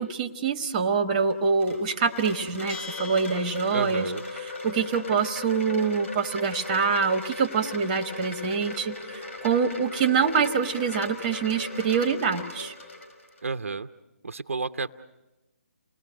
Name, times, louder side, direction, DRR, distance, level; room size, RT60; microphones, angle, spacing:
voice 1, 0.0-4.1 4.4-12.7, right 5 dB, 25° right, 8 dB, 1.0 m, -25 dB
Wind chime, 1.2-13.4, left 3 dB, 60° left, 5.2 m, -38 dB
Bell, 2.7-4.3, left 5 dB, 20° left, 1.2 m, -42 dB
voice 2, 3.7-4.2 13.4-13.9 14.2-14.9, right 4 dB, 65° right, 9 dB, 0.7 m, -30 dB
28.5 x 19.5 x 6.3 m, 1.1 s
figure-of-eight pair, 145°, 8 cm